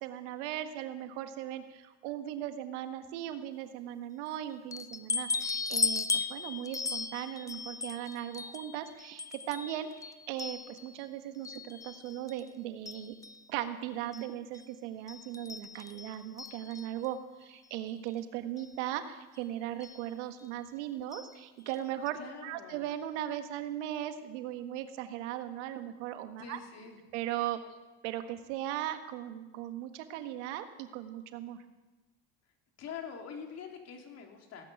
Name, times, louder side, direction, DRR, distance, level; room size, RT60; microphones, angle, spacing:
voice 1, 0.0-13.1 13.5-26.6 27.1-27.6 28.0-31.6, right 12 dB, 85° right, 8 dB, 1.6 m, -38 dB
sound 1, 4.7-11.0 11.4-12.5 12.9-13.4 14.1-14.2 14.5-14.6 15.1-17.1 18.1-18.2 18.6-18.7 19.8-20.0 21.1-21.3 21.7-21.8 22.1-22.2, left 4 dB, 10° left, 0.6 m, -37 dB
voice 2, 22.2-22.8 26.4-27.0 32.8-34.6, left 6 dB, 45° left, 2 dB, 3.5 m, -44 dB
17.5 x 8.9 x 9.3 m, 1.1 s
supercardioid pair, 120°, 34 cm